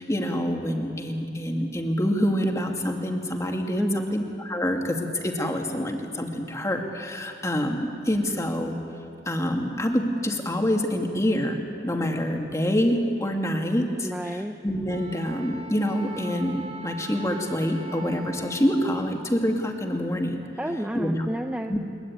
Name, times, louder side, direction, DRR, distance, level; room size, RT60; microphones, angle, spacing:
voice 1, 0.0-8.8 9.3-14.1 14.6-20.4 20.9-21.2 21.7-21.8, equal, 15° left, 3 dB, 2.2 m, -26 dB
voice 2, 3.8-4.2 14.0-14.6 20.6-21.7, equal, 5° right, 4 dB, 0.8 m, -30 dB
Wind instrument woodwind instrument, 14.9-19.2, right 1 dB, 35° right, 2.3 m, -41 dB
22.0 x 22.0 x 9.5 m, 2.8 s
head